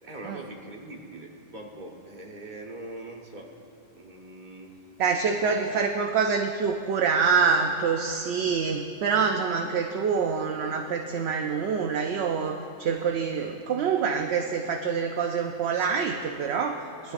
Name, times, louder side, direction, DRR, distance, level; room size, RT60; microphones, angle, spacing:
voice 1, 0.0-3.5 3.9-4.7 5.4-5.8, right 2 dB, 40° right, 0 dB, 1.4 m, -42 dB
voice 2, 5.0-17.1, right 5 dB, 60° right, 4 dB, 0.8 m, -26 dB
19.0 x 12.5 x 2.5 m, 2.8 s
omnidirectional pair, 1.3 m